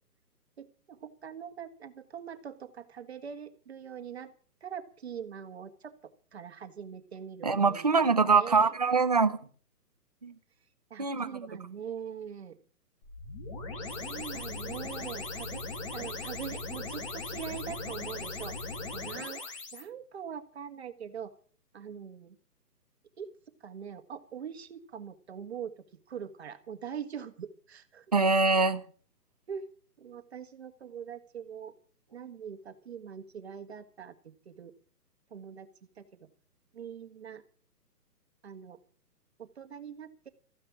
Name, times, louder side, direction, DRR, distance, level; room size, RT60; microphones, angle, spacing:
voice 1, 0.6-4.3 4.6-8.7 10.9-12.6 13.9-15.6 15.9-21.3 21.7-22.4 23.2-23.3 23.6-28.1 29.5-29.7 30.0-31.7 32.1-34.7 35.3-35.7 36.0-36.1 36.7-37.4 38.4-38.8 39.4-40.3, right 8 dB, 40° right, 1.7 m, -43 dB
voice 2, 7.4-9.4 10.2-10.3 11.0-11.3 28.1-28.8, right 4 dB, 25° right, 0.7 m, -24 dB
sound 1, 13.0-19.8, left 3 dB, 20° left, 1.9 m, -39 dB
14.5 x 9.8 x 8.6 m
hypercardioid pair, 170°, 48 cm